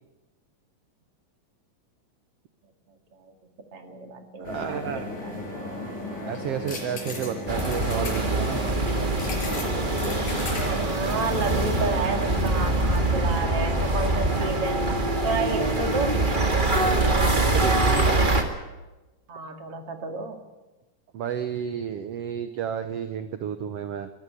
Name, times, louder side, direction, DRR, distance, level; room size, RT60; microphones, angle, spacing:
voice 1, 3.7-5.4 10.8-14.9 15.2-16.2 19.3-20.4, right 4 dB, 45° right, 6 dB, 2.9 m, -31 dB
sound 1, 4.4-13.3, left 2 dB, 65° left, 6.5 m, -35 dB
voice 2, 4.4-5.0 6.2-8.6 17.3-18.2 21.1-24.1, right 9 dB, 70° right, 10 dB, 1.5 m, -31 dB
sound 2, 7.5-18.4, right 2 dB, 20° right, 1.5 m, -24 dB
23.0 x 14.5 x 9.9 m, 1.1 s
omnidirectional pair, 3.8 m